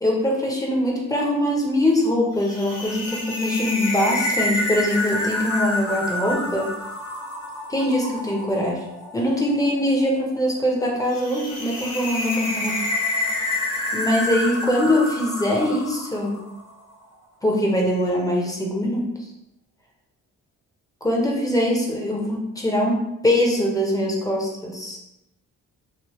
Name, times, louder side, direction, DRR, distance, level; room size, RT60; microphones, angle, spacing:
voice 1, 0.0-6.7 7.7-8.8 9.1-12.8 13.9-16.4 17.4-19.0 21.0-25.0, left 1 dB, 10° left, -2 dB, 0.8 m, -22 dB
sound 1, 2.4-16.7, left 2 dB, 50° left, 1.2 m, -28 dB
3.2 x 2.0 x 3.1 m, 0.85 s
cardioid pair, 80°, 33 cm